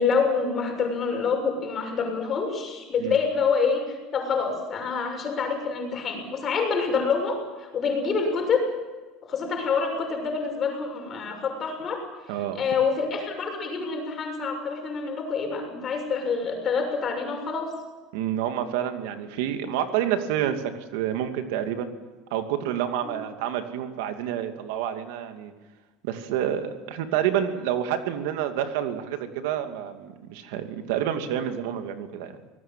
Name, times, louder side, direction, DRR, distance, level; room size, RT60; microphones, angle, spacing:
voice 1, 0.0-8.6 9.2-12.0 12.5-17.7 23.0-23.2, left 5 dB, 30° left, 3 dB, 6.6 m, -27 dB
voice 2, 12.3-12.6 18.1-20.6 20.9-21.9 22.3-25.5 26.0-32.4, right 10 dB, 85° right, 7 dB, 2.6 m, -28 dB
24.5 x 19.0 x 7.6 m, 1.3 s
cardioid pair, 155°, 0 cm